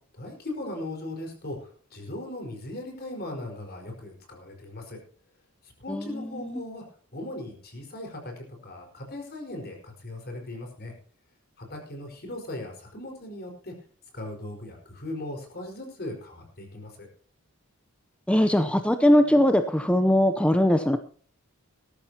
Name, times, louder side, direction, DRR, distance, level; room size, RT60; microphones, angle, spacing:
voice 1, 0.2-1.6 1.9-5.0 5.8-6.8 7.1-10.9 11.6-13.7 14.1-17.1, left 1 dB, 50° left, 2 dB, 4.9 m, -38 dB
voice 2, 5.9-6.6 18.3-21.0, left 1 dB, 5° left, 8 dB, 0.7 m, -21 dB
18.5 x 13.5 x 2.9 m, 0.43 s
head